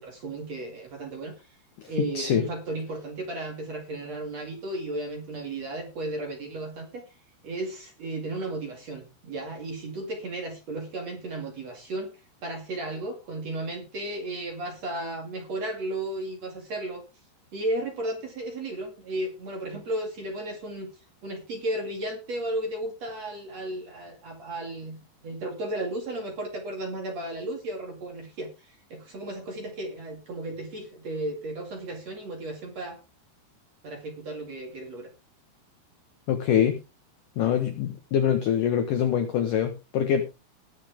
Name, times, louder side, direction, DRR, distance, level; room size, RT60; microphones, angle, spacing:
voice 1, 0.0-1.3 1.9-7.0 7.4-12.1 12.4-17.0 17.5-20.9 21.2-33.0 33.8-35.1, right 1 dB, 45° right, 3 dB, 2.7 m, -34 dB
voice 2, 1.8-2.4 36.3-36.8 37.4-40.2, left 9 dB, 75° left, 7 dB, 1.9 m, -24 dB
19.5 x 6.7 x 3.6 m, 0.29 s
omnidirectional pair, 5.4 m